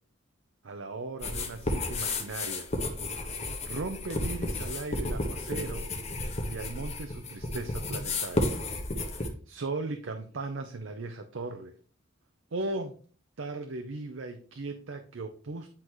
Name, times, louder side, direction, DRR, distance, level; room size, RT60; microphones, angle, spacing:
voice 1, 0.6-2.7 3.1-3.3 3.6-5.9 6.5-8.6 9.1-11.7 12.5-12.9 13.4-15.7, right 3 dB, 80° right, 6 dB, 0.7 m, -37 dB
sound 1, 1.2-9.3, left 2 dB, 35° left, 1.2 m, -32 dB
9.9 x 4.0 x 3.1 m, 0.42 s
head